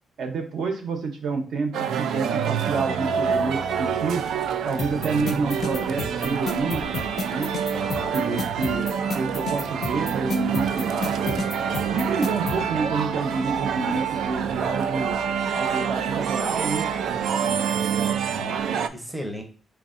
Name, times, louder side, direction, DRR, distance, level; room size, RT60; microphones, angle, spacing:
voice 1, 0.2-4.2 4.6-6.8 7.2-7.5 8.1-8.9 9.1-11.5 11.9-15.2 15.5-16.9, right 4 dB, 65° right, 4 dB, 0.8 m, -28 dB
sound 1, 1.7-18.9, right 7 dB, 85° right, 0.3 m, -27 dB
sound 2, 3.0-17.3, equal, 30° right, 0.9 m, -48 dB
sound 3, 4.8-12.6, left 4 dB, 50° left, 0.4 m, -31 dB
voice 2, 7.7-8.5 17.1-17.8 18.3-19.4, equal, 5° right, 3 dB, 0.6 m, -37 dB
4.5 x 3.9 x 2.5 m, 0.40 s
wide cardioid pair, 175°, 0 cm